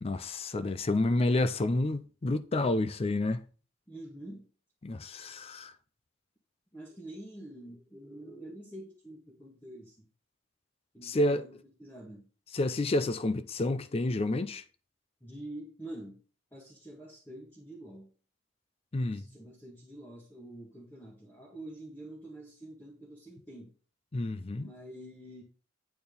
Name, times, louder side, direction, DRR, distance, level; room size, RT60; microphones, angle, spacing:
voice 1, 0.0-3.4 4.8-5.7 11.0-11.4 12.5-14.6 18.9-19.3 24.1-24.7, left 2 dB, 30° left, 0.4 m, -29 dB
voice 2, 3.9-4.4 6.7-10.1 10.9-12.3 15.2-16.2 16.5-18.1 19.0-23.7 24.6-25.4, right 1 dB, 10° left, 1.7 m, -47 dB
8.7 x 4.4 x 5.3 m
head